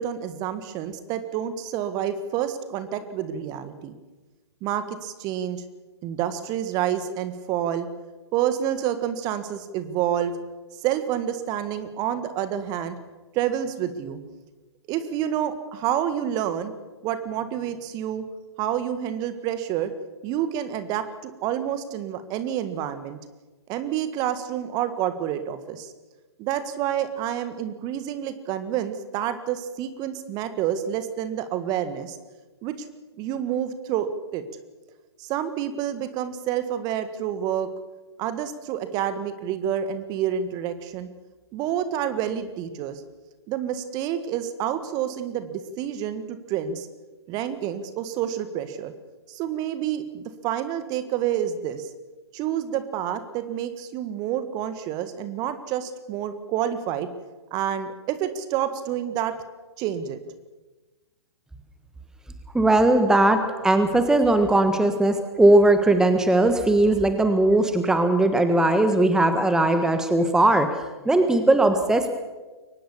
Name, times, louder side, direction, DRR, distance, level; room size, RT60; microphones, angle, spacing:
voice 1, 0.0-3.9 4.6-5.6 6.0-7.9 8.3-10.3 10.8-12.9 13.3-14.2 14.9-16.7 17.0-18.2 18.6-19.9 20.2-23.2 23.7-25.9 26.4-32.2 32.6-32.8 33.2-34.4 35.2-37.7 38.2-41.1 41.5-43.0 43.5-46.9 47.3-48.9 49.3-51.9 52.3-57.1 57.5-59.3 59.8-60.2, right 10 dB, 25° right, 11 dB, 1.6 m, -28 dB
voice 2, 62.5-70.7 71.0-72.1, right 2 dB, 5° right, 8 dB, 1.4 m, -19 dB
23.0 x 19.0 x 7.2 m, 1.2 s
figure-of-eight pair, 120°, 14 cm